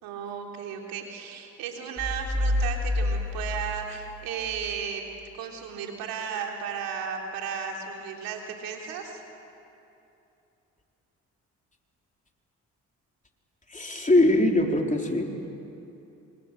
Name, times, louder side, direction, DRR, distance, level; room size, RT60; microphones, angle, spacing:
voice 1, 0.0-5.0 5.4-9.2, right 7 dB, 80° right, 1 dB, 3.4 m, -34 dB
sound 1, 2.0-4.8, left 1 dB, 5° left, 7.8 m, -29 dB
voice 2, 13.7-15.3, left 1 dB, 20° left, 2 dB, 3.9 m, -22 dB
27.5 x 25.0 x 7.7 m, 2.8 s
hypercardioid pair, 50°, 34 cm